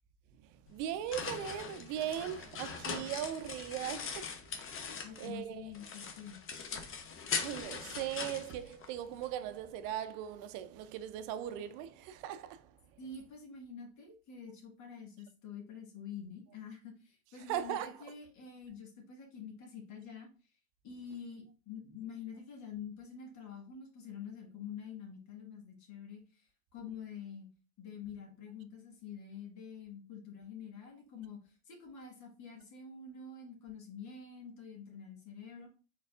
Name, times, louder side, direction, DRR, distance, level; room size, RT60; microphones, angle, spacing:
voice 1, 0.4-4.8 5.2-5.7 7.3-12.7 17.5-17.9, right 11 dB, 60° right, 0.5 m, -39 dB
sound 1, 0.7-5.4 5.7-9.3, left 6 dB, 35° left, 0.8 m, -41 dB
voice 2, 5.0-6.4 13.0-20.3 20.8-27.5 27.8-35.7, left 6 dB, 50° left, 1.6 m, -47 dB
4.1 x 3.9 x 2.4 m
hypercardioid pair, 85°, 36 cm